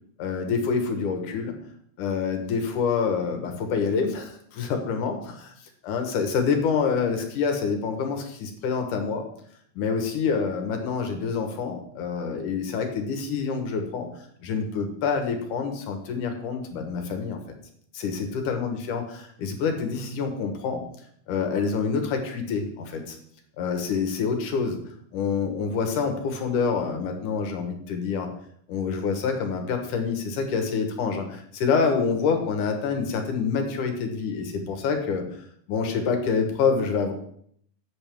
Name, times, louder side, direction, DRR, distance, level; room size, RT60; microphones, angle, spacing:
voice 1, 0.2-1.6 2.0-5.5 5.8-9.2 9.8-14.1 14.4-17.4 17.9-20.9 21.3-23.2 23.6-24.8 25.1-28.3 28.7-37.1, left 5 dB, 65° left, 5 dB, 2.5 m, -27 dB
13.5 x 8.5 x 3.5 m, 0.65 s
omnidirectional pair, 4.4 m